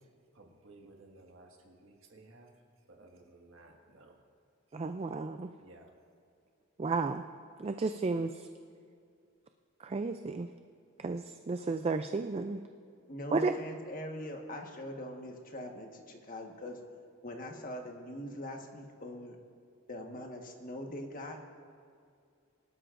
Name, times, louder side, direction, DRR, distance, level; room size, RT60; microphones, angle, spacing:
voice 1, 0.0-2.5 2.9-4.2 5.6-5.9, right 2 dB, 70° right, 1 dB, 1.8 m, -57 dB
voice 2, 4.7-5.5 6.8-7.2 7.6-8.5 9.8-10.5 11.0-12.6 13.3-13.5, right 4 dB, 30° right, 8 dB, 0.3 m, -33 dB
voice 3, 13.1-16.8 17.2-19.4 19.9-21.4, left 1 dB, 40° left, 2 dB, 1.4 m, -42 dB
23.0 x 12.5 x 2.5 m, 2.4 s
head